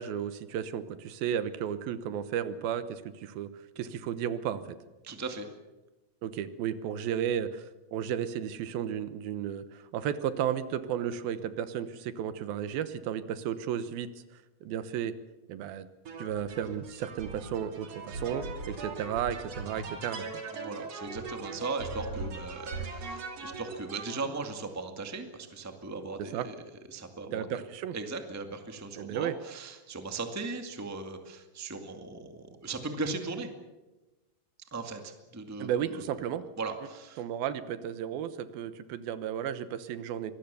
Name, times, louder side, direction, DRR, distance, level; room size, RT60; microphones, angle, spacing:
voice 1, 0.0-3.5 3.8-4.6 6.2-7.6 7.9-14.1 14.6-15.1 15.5-15.9 16.2-20.3 26.2-26.5 27.3-28.0 29.0-29.4 35.6-36.4 37.2-40.3, right 9 dB, 85° right, 12 dB, 2.9 m, -33 dB
voice 2, 5.0-5.5 20.5-26.5 26.9-27.6 27.9-33.5 34.7-36.1 36.6-37.2, right 3 dB, 10° right, 5 dB, 1.1 m, -38 dB
sound 1, 16.1-24.3, right 3 dB, 45° right, 3.7 m, -40 dB
24.5 x 20.0 x 7.0 m, 1.1 s
omnidirectional pair, 4.2 m